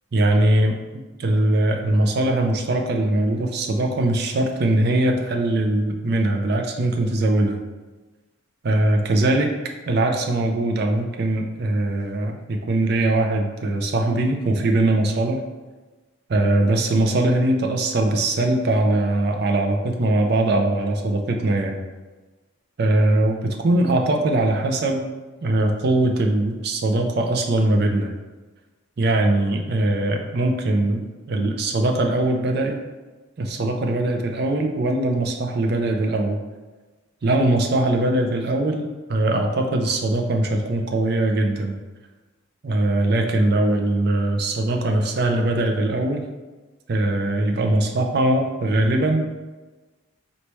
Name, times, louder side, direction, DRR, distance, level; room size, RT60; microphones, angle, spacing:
voice 1, 0.1-0.8 1.2-7.6 8.6-9.5 9.9-15.4 16.3-21.8 22.8-25.1 25.4-28.1 29.0-32.8 33.4-36.4 37.2-41.8 42.6-46.2 46.9-49.2, right 1 dB, 50° right, 3 dB, 0.4 m, -21 dB
4.1 x 3.3 x 3.0 m, 1.2 s
head